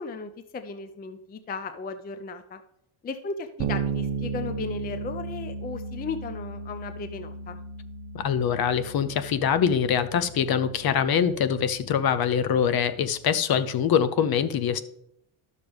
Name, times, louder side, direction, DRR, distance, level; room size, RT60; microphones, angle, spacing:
voice 1, 0.0-2.6 3.0-7.6, left 4 dB, 20° left, 9 dB, 0.4 m, -36 dB
Bass guitar, 3.6-13.2, right 5 dB, 65° right, 0.9 m, -36 dB
voice 2, 8.1-14.8, left 8 dB, 45° left, 13 dB, 0.7 m, -24 dB
12.0 x 6.5 x 3.5 m, 0.74 s
cardioid pair, 140°, 49 cm